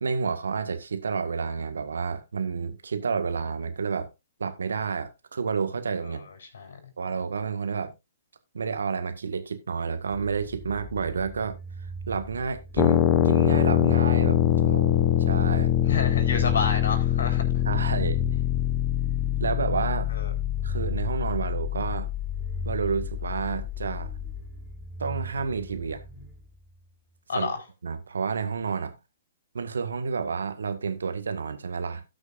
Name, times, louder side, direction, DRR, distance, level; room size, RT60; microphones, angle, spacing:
voice 1, 0.0-4.1 4.4-6.3 7.0-7.9 8.5-11.6 12.1-14.9 15.2-15.7 17.6-18.2 19.4-20.1 20.6-22.1 22.6-24.1 25.0-26.0 27.3-27.5 27.8-28.9 29.5-32.0, right 5 dB, 80° right, 1.7 m, -30 dB
voice 2, 6.1-6.8 15.8-17.4 20.1-20.3 27.3-27.6, left 5 dB, 70° left, 4.3 m, -30 dB
sound 1, 10.1-26.9, right 2 dB, 15° left, 1.8 m, -41 dB
sound 2, 12.8-24.4, left 11 dB, 30° left, 1.4 m, -24 dB
18.0 x 6.3 x 2.6 m
hypercardioid pair, 125°, 0 cm